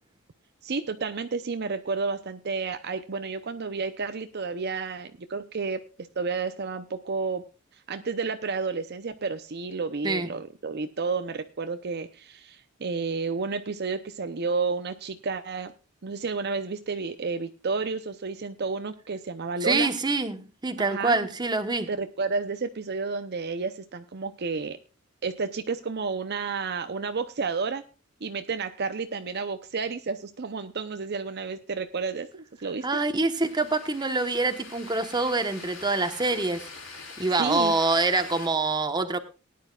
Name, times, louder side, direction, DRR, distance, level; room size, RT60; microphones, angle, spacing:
voice 1, 0.6-7.4 7.9-15.7 16.0-19.9 20.8-21.3 21.9-24.8 25.2-27.8 28.2-32.9 37.4-37.7, right 4 dB, 50° right, 0.7 m, -31 dB
voice 2, 19.6-21.9 32.8-36.6 37.2-39.2, right 3 dB, 20° right, 1.1 m, -25 dB
sound 1, 33.3-38.5, left 4 dB, 70° left, 4.9 m, -44 dB
19.0 x 10.5 x 2.4 m
head